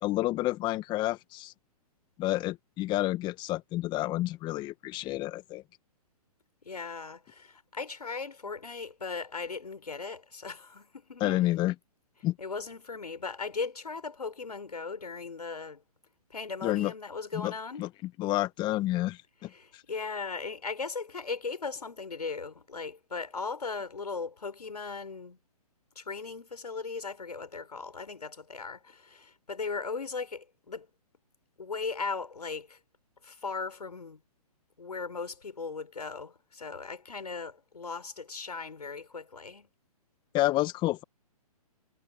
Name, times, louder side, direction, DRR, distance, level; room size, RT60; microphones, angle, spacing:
voice 1, 0.0-1.5 2.2-5.6 11.2-11.7 12.2-12.3 16.6-16.9 17.3-17.5 17.8-17.9 18.2-19.8 40.3-41.0, left 16 dB, 25° left, 1.3 m, -29 dB
voice 2, 6.6-11.5 12.4-15.8 16.3-17.9 19.5-25.4 25.9-30.9 31.6-32.8 33.2-34.2 34.8-39.7, left 4 dB, 85° left, 4.7 m, -38 dB
hypercardioid pair, 130°, 20 cm